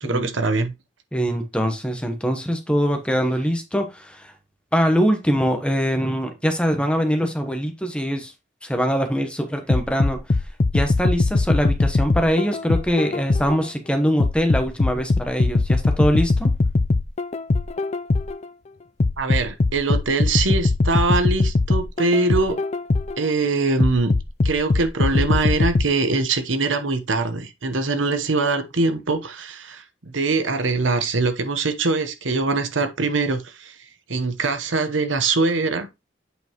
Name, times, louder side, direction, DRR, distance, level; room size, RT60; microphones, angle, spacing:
voice 1, 0.0-0.7 19.2-22.6 23.2-24.1 24.4-33.8 34.1-35.9, right 3 dB, 85° right, 1.0 m, -23 dB
voice 2, 1.1-4.3 4.7-8.3 8.6-10.2 10.7-16.5, equal, 5° left, 1.0 m, -23 dB
sound 1, 9.7-13.7 14.2-18.5 19.0-23.3 23.8-25.9, left 3 dB, 35° left, 0.4 m, -21 dB
8.2 x 4.9 x 3.0 m
head